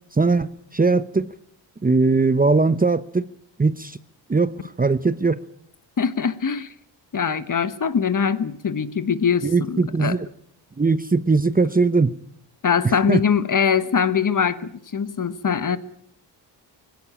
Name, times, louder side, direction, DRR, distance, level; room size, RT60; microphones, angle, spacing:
voice 1, 0.2-1.3 1.8-3.3 3.6-4.0 4.3-5.4 9.4-10.3 10.8-12.1 12.8-13.2, right 3 dB, 20° right, 14 dB, 0.8 m, -20 dB
voice 2, 6.0-6.7 7.1-10.2 12.6-15.8, left 6 dB, 40° left, 13 dB, 1.3 m, -22 dB
20.0 x 17.0 x 8.9 m, 0.71 s
cardioid pair, 65°, 46 cm